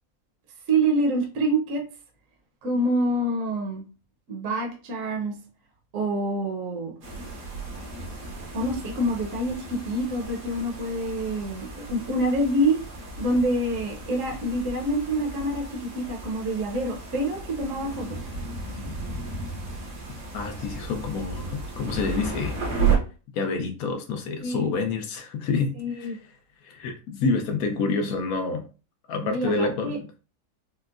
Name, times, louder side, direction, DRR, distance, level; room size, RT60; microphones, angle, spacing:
voice 1, 0.7-1.8 2.6-3.8 4.3-5.3 5.9-6.9 8.5-12.8 13.2-18.2 24.4-24.7 25.8-26.2 29.2-30.0, right 1 dB, 60° right, 1.0 m, -26 dB
sound 1, 7.0-23.0, right 4 dB, 90° right, 1.6 m, -33 dB
voice 2, 20.3-22.6 23.3-26.2 26.6-28.7 29.1-30.1, left 4 dB, 70° left, 1.1 m, -28 dB
4.4 x 2.1 x 2.4 m
omnidirectional pair, 1.7 m